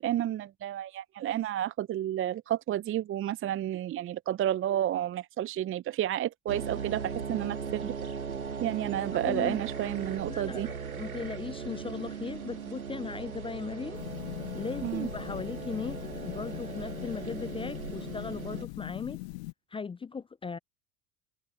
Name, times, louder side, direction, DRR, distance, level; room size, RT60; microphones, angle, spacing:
voice 1, 0.0-7.9 8.6-10.7 14.8-15.1, right 12 dB, 30° right, 0.9 m, -31 dB
sound 1, 6.5-18.7, right 6 dB, 85° right, 2.2 m, -38 dB
voice 2, 9.2-9.6 10.3-14.0 14.5-19.2 19.7-20.6, left 5 dB, 15° left, 0.7 m, -38 dB
sound 2, 13.9-19.5, left 26 dB, 55° left, 0.9 m, -41 dB
figure-of-eight pair, 80°, 41 cm